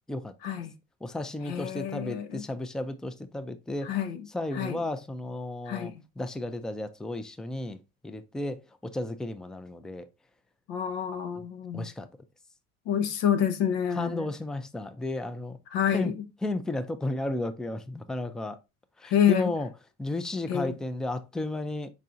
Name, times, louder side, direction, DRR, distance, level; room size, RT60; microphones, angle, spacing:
voice 1, 0.4-0.7 1.5-2.4 3.8-4.2 4.5-4.8 5.7-6.0 10.7-11.9 12.9-14.3 15.7-16.1 19.1-19.5 20.5-20.8, left 9 dB, 90° left, 0.8 m, -28 dB
voice 2, 1.0-3.9 4.3-7.8 8.0-10.1 11.7-12.1 14.0-15.6 15.9-16.1 16.4-18.6 19.0-19.7 20.0-21.9, left 2 dB, ahead, 0.3 m, -33 dB
4.7 x 4.2 x 2.5 m
cardioid pair, 105°, 33 cm